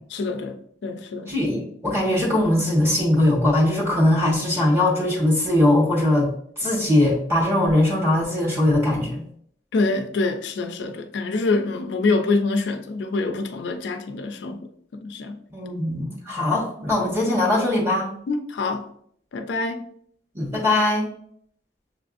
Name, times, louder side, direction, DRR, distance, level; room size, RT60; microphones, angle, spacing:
voice 1, 0.1-0.6 0.8-1.3 9.7-14.6 14.9-15.4 18.3-18.9 19.3-19.9, left 3 dB, 70° left, 0.4 m, -25 dB
voice 2, 1.3-9.2 15.5-18.1 20.3-21.1, left 1 dB, 15° right, 1.0 m, -21 dB
6.7 x 2.5 x 2.4 m
head